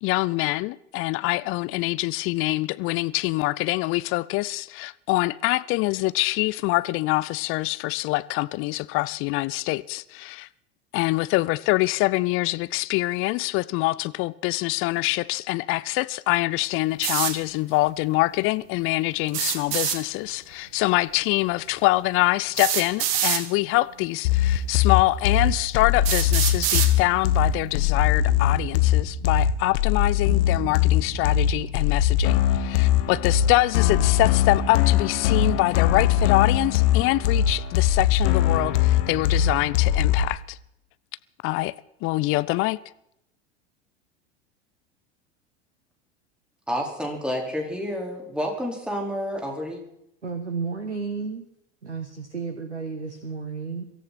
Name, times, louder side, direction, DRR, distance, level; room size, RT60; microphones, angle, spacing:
voice 1, 0.0-10.5 10.9-40.6 41.4-41.7 42.0-42.8, left 20 dB, 40° left, 0.6 m, -25 dB
sound 1, 17.0-17.4 19.3-20.0 21.4-21.5 22.6-23.4 24.4-24.5 25.2-25.3 26.1-26.9, right 9 dB, 60° right, 2.0 m, -25 dB
sound 2, 24.2-40.2, left 10 dB, 55° left, 1.4 m, -21 dB
voice 2, 46.7-49.8, equal, 5° right, 4.5 m, -29 dB
voice 3, 50.2-51.5 51.8-53.9, right 5 dB, 85° right, 1.4 m, -32 dB
23.5 x 14.0 x 4.3 m
figure-of-eight pair, 80°, 33 cm